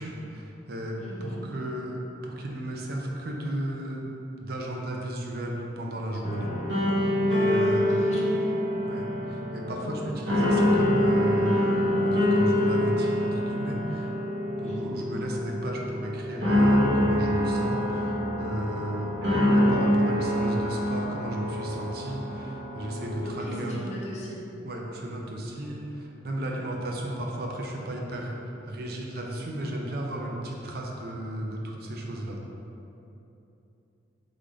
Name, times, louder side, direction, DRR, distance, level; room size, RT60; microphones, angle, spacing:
voice 1, 0.0-4.1 4.4-6.5 7.3-7.8 8.9-14.1 14.6-24.1 24.6-32.4, right 1 dB, 55° right, 0 dB, 0.5 m, -34 dB
voice 2, 1.0-1.5 7.5-8.6 14.6-14.9 23.2-24.4, equal, 35° left, -5 dB, 0.8 m, -36 dB
sound 1, 6.2-23.3, left 1 dB, 90° right, 1.2 m, -25 dB
3.8 x 3.5 x 3.6 m, 2.9 s
head